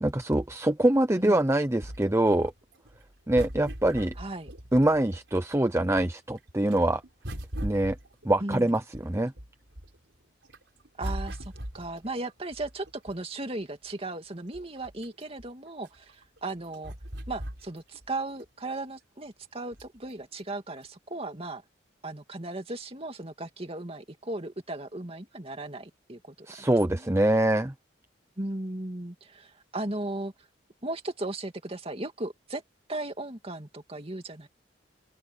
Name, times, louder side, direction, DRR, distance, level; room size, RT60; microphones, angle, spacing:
voice 1, 0.0-2.5 3.3-4.1 4.7-7.0 7.6-8.0 8.2-9.3 26.5-27.7, right 1 dB, 15° right, 0.7 m, -24 dB
sound 1, 1.8-5.6 5.9-10.0 10.4-13.4 14.0-14.1 14.3-18.1 18.5-18.6 19.7-20.1 20.8-20.9, equal, 75° right, 4.7 m, -40 dB
voice 2, 4.2-4.5 8.4-8.7 11.0-16.9 17.3-21.6 22.0-26.5 26.9-27.1 28.4-30.3 30.8-32.6 32.9-34.5, right 2 dB, 30° right, 2.4 m, -36 dB
open air
head